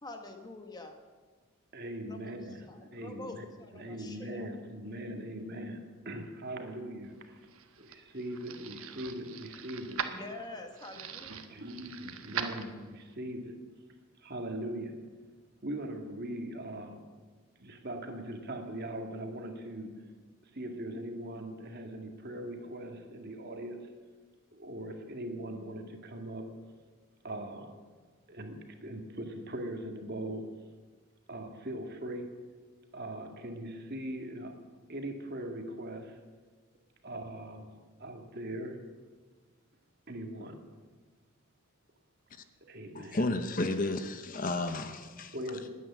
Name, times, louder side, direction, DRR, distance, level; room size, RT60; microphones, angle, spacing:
voice 1, 0.0-1.0 2.1-4.5 10.1-11.3, left 2 dB, 20° left, 4 dB, 1.4 m, -46 dB
voice 2, 1.7-3.4 3.7-7.4 7.8-10.0 11.4-13.6 14.2-15.0 15.6-17.0 17.6-20.0 20.5-23.9 24.5-26.5 27.2-27.7 28.3-30.5 31.3-32.3 32.9-34.5 34.9-36.2 37.0-37.7 38.0-38.8 40.1-40.6 42.7-43.2 45.3-45.7, right 1 dB, 45° right, 4 dB, 1.9 m, -40 dB
sound 1, 7.2-13.1, right 7 dB, 75° right, 1.3 m, -41 dB
voice 3, 42.9-45.3, left 2 dB, 40° left, 9 dB, 0.8 m, -32 dB
19.5 x 9.4 x 7.3 m, 1.4 s
head